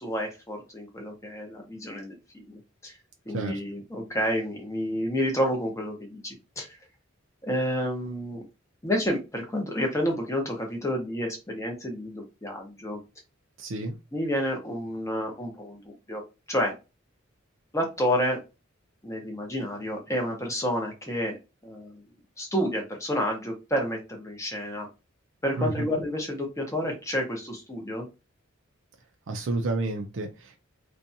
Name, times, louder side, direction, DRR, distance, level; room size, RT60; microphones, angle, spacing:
voice 1, 0.0-2.9 3.3-6.7 7.4-8.4 8.8-13.0 14.1-16.2 16.5-16.7 17.7-18.4 19.0-21.4 21.6-22.0 22.4-24.9 25.4-28.1, equal, 15° left, 0.8 m, -30 dB
voice 2, 3.3-3.6 13.6-14.0 25.6-26.0 29.3-30.6, right 2 dB, 65° right, 0.4 m, -30 dB
2.6 x 2.2 x 2.7 m
head